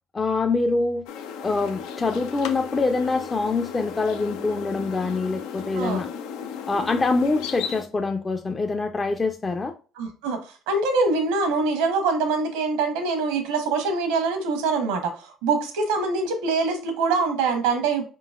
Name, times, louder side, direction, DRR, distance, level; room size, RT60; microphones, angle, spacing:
voice 1, 0.1-1.0 1.4-6.1 6.7-9.7, left 3 dB, 30° left, 4 dB, 0.5 m, -25 dB
sound 1, 1.1-7.8, left 7 dB, 80° left, 0.5 m, -35 dB
voice 2, 10.0-10.4 10.7-18.0, right 4 dB, 85° right, 6 dB, 1.0 m, -24 dB
4.7 x 3.8 x 2.4 m, 0.36 s
supercardioid pair, 70°, 0 cm